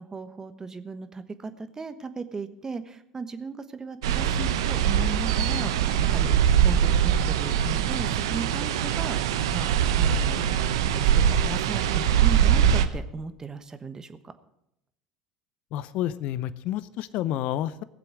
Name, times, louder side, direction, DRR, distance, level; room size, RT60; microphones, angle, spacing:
voice 1, 0.0-10.5 10.9-14.3, right 4 dB, 25° right, 10 dB, 1.2 m, -37 dB
sound 1, 4.0-12.9, right 9 dB, 75° right, 0.8 m, -22 dB
voice 2, 15.7-17.8, left 12 dB, 55° left, 16 dB, 0.6 m, -29 dB
18.0 x 7.7 x 6.2 m, 0.80 s
hypercardioid pair, 75°, 3 cm